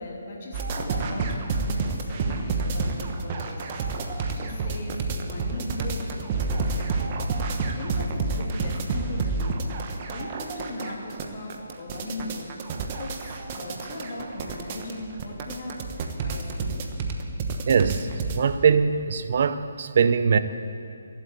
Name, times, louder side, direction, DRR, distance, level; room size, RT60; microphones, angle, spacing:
voice 1, 0.0-3.8 4.1-7.1 7.6-12.7 13.0-15.9 16.2-16.8, left 2 dB, 50° left, -1 dB, 2.9 m, -38 dB
sound 1, 0.5-18.4, right 3 dB, 35° right, 1.1 m, -29 dB
voice 2, 17.7-18.1 18.3-20.4, right 6 dB, 50° right, 11 dB, 0.6 m, -21 dB
13.5 x 8.1 x 9.0 m, 2.5 s
hypercardioid pair, 155°, 0 cm